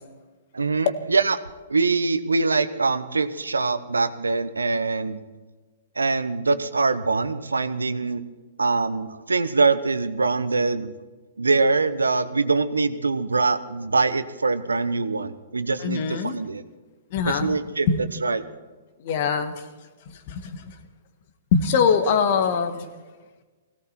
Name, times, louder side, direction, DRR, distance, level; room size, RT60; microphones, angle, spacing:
voice 1, 0.5-1.4 1.7-5.2 6.0-8.2 8.6-10.9 11.4-16.6 17.3-17.9 18.2-18.4, right 3 dB, 85° right, 13 dB, 1.0 m, -23 dB
voice 2, 15.8-16.4 17.1-17.6 17.9-18.0 19.0-19.5 20.3-20.6 21.5-22.9, left 6 dB, 50° left, 9 dB, 1.8 m, -22 dB
17.5 x 17.0 x 4.4 m, 1.3 s
figure-of-eight pair, 115°, 0 cm